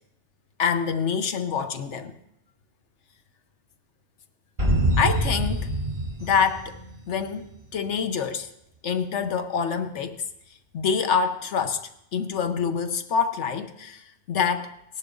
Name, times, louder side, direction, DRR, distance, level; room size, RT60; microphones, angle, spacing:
voice 1, 0.6-2.1 5.0-5.7 6.2-6.8 7.1-8.5 8.8-10.2 10.7-11.8 12.1-14.7, left 6 dB, 90° left, 8 dB, 1.3 m, -26 dB
sound 1, 4.6-7.3, right 1 dB, 45° right, 5.1 m, -25 dB
18.5 x 11.0 x 3.9 m, 0.80 s
omnidirectional pair, 1.2 m